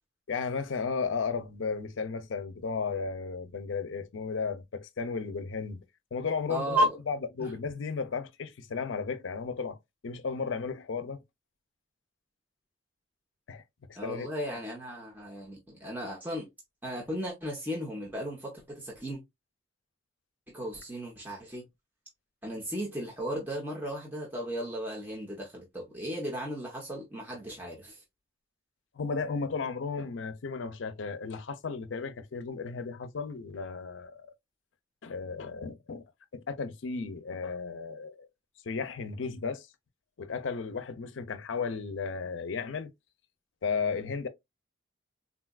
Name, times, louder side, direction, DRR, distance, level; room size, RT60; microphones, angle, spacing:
voice 1, 0.3-5.8 6.1-9.8 10.0-11.2 13.5-13.6 13.9-14.3 28.9-34.3 35.0-36.0 36.3-38.3 38.6-39.7 40.2-42.9 43.6-44.3, left 5 dB, 75° left, 0.5 m, -34 dB
voice 2, 6.5-6.9 7.4-7.5 13.9-16.5 16.8-19.2 20.5-21.7 22.4-28.0, right 1 dB, 10° right, 0.8 m, -35 dB
3.8 x 2.3 x 2.3 m
head